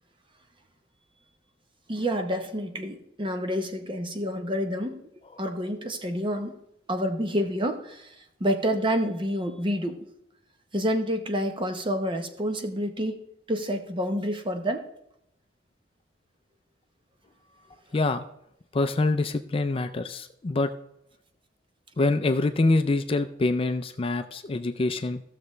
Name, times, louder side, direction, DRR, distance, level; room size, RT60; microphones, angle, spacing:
voice 1, 1.9-5.0 5.4-6.5 6.9-8.1 8.4-10.0 10.7-13.2 13.5-14.8, equal, 30° right, 6 dB, 0.9 m, -28 dB
voice 2, 17.9-18.3 18.7-20.7 22.0-25.2, left 2 dB, 30° left, 9 dB, 0.4 m, -25 dB
15.0 x 6.7 x 3.2 m, 0.79 s
head